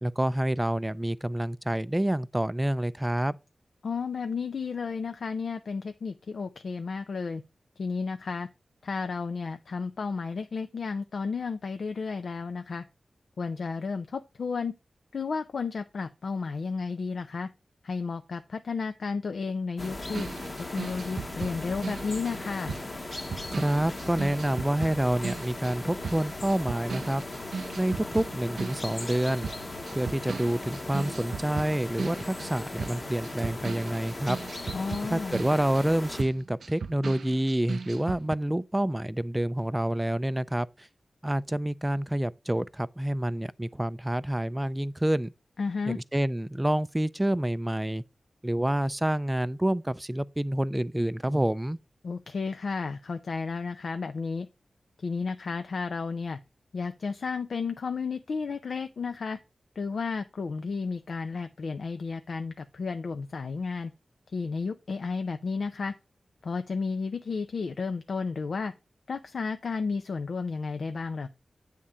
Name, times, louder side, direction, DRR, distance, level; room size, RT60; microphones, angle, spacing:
voice 1, 0.0-3.4 23.4-27.2 27.8-29.5 29.9-34.4 35.1-40.9 41.2-45.3 45.9-48.0 48.4-51.8, right 1 dB, 10° right, 0.4 m, -28 dB
voice 2, 3.8-7.4 7.8-8.5 8.8-12.8 13.4-14.7 15.1-17.5 17.8-20.3 20.7-22.8 34.7-35.4 45.6-46.0 52.0-54.5 55.0-56.4 56.7-59.4 59.8-63.9 64.3-65.9 66.4-68.7 69.1-71.3, left 4 dB, 75° left, 0.5 m, -32 dB
sound 1, 19.8-36.2, left 2 dB, 35° left, 1.0 m, -38 dB
sound 2, 20.1-29.2 29.4-38.3, right 5 dB, 85° right, 0.3 m, -38 dB
8.7 x 3.7 x 5.4 m
wide cardioid pair, 95°, 0 cm